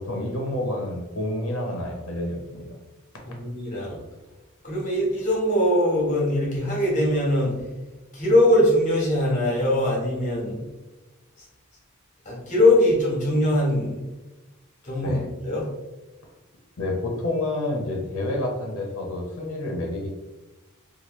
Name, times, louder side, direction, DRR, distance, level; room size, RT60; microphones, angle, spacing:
voice 1, 0.0-2.7 15.0-15.3 16.8-20.1, left 1 dB, 60° left, 1 dB, 0.7 m, -29 dB
voice 2, 3.4-4.0 4.6-7.5 8.1-10.6 11.4-11.5 12.2-14.0 14.8-15.6, left 1 dB, 35° left, -4 dB, 1.1 m, -21 dB
3.0 x 2.3 x 3.0 m, 1.1 s
head